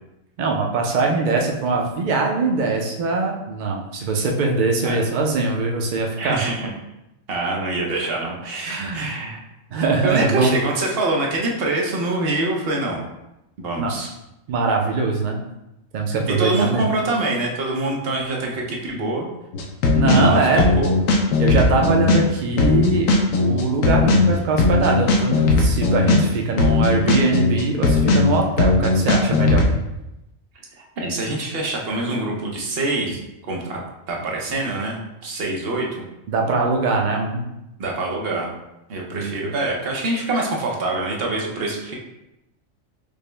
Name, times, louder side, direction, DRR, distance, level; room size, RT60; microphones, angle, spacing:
voice 1, 0.4-6.4 8.0-8.1 8.7-9.1 9.7-10.5 13.8-13.9 14.5-15.4 15.9-16.8 19.9-20.7 21.4-23.1 23.4-29.6 36.3-37.4 39.1-39.5, right 3 dB, 70° right, 1 dB, 0.4 m, -22 dB
voice 2, 6.2-6.7 7.3-9.4 10.0-13.0 13.6-14.1 16.4-19.3 20.1-20.9 30.8-36.1 37.8-38.5 38.9-42.0, right 2 dB, 55° right, -1 dB, 0.8 m, -25 dB
sound 1, 19.5-29.7, left 3 dB, 75° left, 1.0 m, -18 dB
5.2 x 2.0 x 3.2 m, 0.91 s
omnidirectional pair, 1.4 m